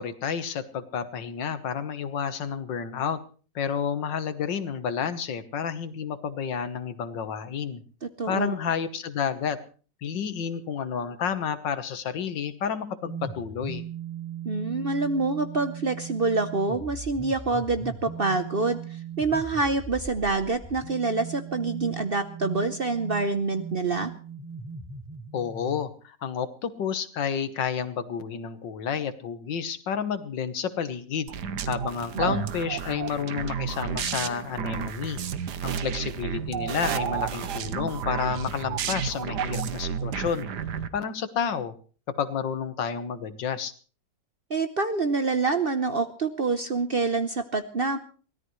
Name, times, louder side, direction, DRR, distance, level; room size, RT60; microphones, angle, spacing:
voice 1, 0.0-3.2 3.6-7.8 8.3-9.6 10.0-13.9 25.3-31.3 31.7-35.2 35.6-40.5 40.9-41.7 42.2-43.7, left 7 dB, 80° left, 11 dB, 1.9 m, -30 dB
voice 2, 8.0-8.5 14.4-18.8 19.2-24.1 32.2-32.4 44.5-48.0, right 3 dB, 45° right, 9 dB, 0.8 m, -26 dB
sound 1, 13.0-25.9, right 6 dB, 10° right, 0.8 m, -39 dB
sound 2, 31.3-40.9, right 7 dB, 70° right, 1.5 m, -31 dB
23.5 x 17.5 x 3.2 m, 0.39 s
omnidirectional pair, 1.9 m